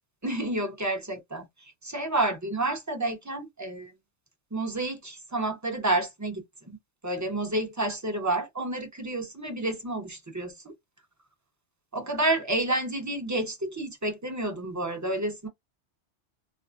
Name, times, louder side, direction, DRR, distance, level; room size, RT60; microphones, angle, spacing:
voice 1, 0.2-1.5 1.8-3.9 4.5-6.4 7.0-10.7 11.9-15.5, right 2 dB, 20° right, 0.5 m, -29 dB
2.5 x 2.3 x 2.3 m
omnidirectional pair, 1.2 m